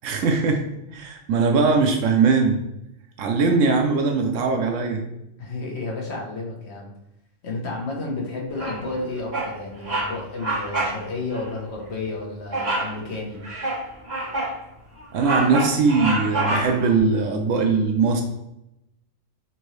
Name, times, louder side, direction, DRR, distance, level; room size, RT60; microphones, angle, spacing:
voice 1, 0.0-0.7 0.9-2.6 3.2-5.0 15.1-18.2, right 4 dB, 80° right, 3 dB, 1.0 m, -20 dB
voice 2, 5.4-6.9 7.4-13.4, left 3 dB, 60° left, -1 dB, 1.3 m, -31 dB
Bird vocalization bird call bird song, 8.6-9.0 9.3-9.5 9.8-10.1 10.4-11.0 11.3-11.5 12.5-12.9 13.4-14.6 15.0-16.9, right 2 dB, 40° right, 1.6 m, -26 dB
5.8 x 2.6 x 3.1 m, 0.88 s
omnidirectional pair, 1.3 m